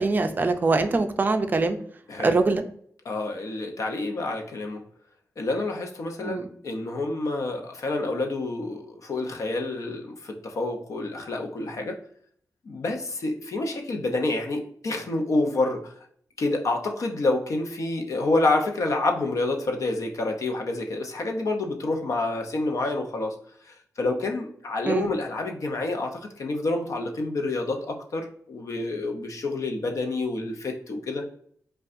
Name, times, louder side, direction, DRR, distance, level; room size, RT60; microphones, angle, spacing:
voice 1, 0.0-1.8 2.2-2.6 6.2-6.5 24.9-25.1, right 3 dB, 30° right, 7 dB, 0.4 m, -23 dB
voice 2, 2.1-2.4 3.0-4.8 5.4-12.0 12.6-15.9 16.4-23.4 23.6-31.3, left 2 dB, 65° left, 4 dB, 0.7 m, -28 dB
5.2 x 2.3 x 2.5 m, 0.62 s
wide cardioid pair, 140°, 6 cm